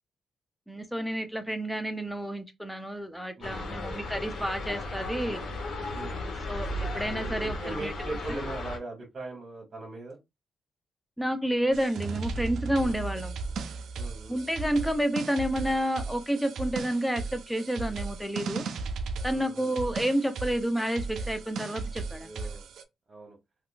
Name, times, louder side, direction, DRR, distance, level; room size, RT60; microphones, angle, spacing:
voice 1, 0.7-5.4 6.0-7.9 8.4-8.5 11.2-13.4 14.3-18.6 19.2-22.4, equal, ahead, 0.7 m, -30 dB
voice 2, 3.3-3.9 5.9-6.2 7.4-10.2 12.8-13.0 13.9-14.4 19.3-19.7 22.1-22.6 23.1-23.4, right 2 dB, 45° right, 1.2 m, -40 dB
sound 1, 3.4-8.8, left 1 dB, 75° left, 1.2 m, -35 dB
sound 2, 11.7-22.8, right 4 dB, 75° right, 0.4 m, -36 dB
3.5 x 2.4 x 2.5 m
cardioid pair, 85°, 0 cm